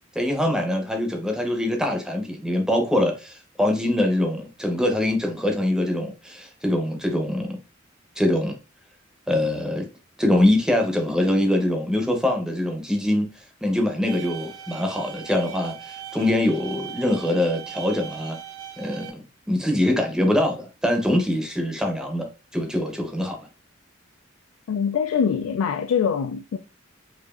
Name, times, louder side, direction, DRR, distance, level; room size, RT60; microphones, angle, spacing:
voice 1, 0.1-7.6 8.2-8.6 9.3-9.9 10.2-13.3 13.6-18.4 18.8-19.2 19.5-22.3 22.5-23.4, left 1 dB, 5° right, 0.7 m, -23 dB
sound 1, 14.1-19.1, right 10 dB, 85° right, 0.9 m, -39 dB
voice 2, 24.7-26.6, left 7 dB, 85° left, 0.3 m, -23 dB
4.9 x 2.6 x 2.4 m
head